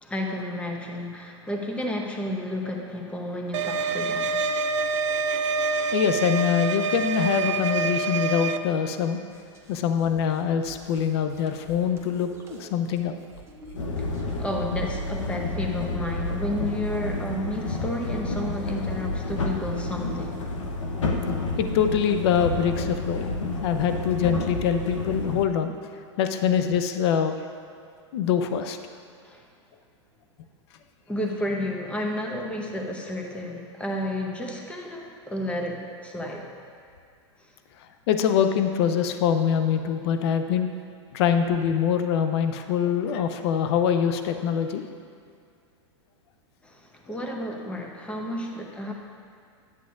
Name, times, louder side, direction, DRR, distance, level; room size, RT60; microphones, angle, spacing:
voice 1, 0.0-4.4 14.0-14.1 14.4-20.5 29.2-29.5 31.1-36.5 37.4-37.5 46.6-48.9, left 1 dB, 5° left, 0 dB, 0.8 m, -32 dB
sound 1, 3.5-8.6, right 4 dB, 85° right, 0.4 m, -26 dB
voice 2, 5.9-9.2 9.7-13.1 21.6-23.3 23.6-25.7 26.2-27.4 28.1-28.8 38.1-40.7 41.1-44.9, left 8 dB, 60° left, 8 dB, 0.6 m, -24 dB
sound 2, 9.3-14.6, right 2 dB, 15° right, 0.9 m, -48 dB
sound 3, 13.7-25.4, left 2 dB, 90° left, 0.9 m, -30 dB
10.5 x 8.2 x 2.5 m, 2.2 s
hypercardioid pair, 125°, 15 cm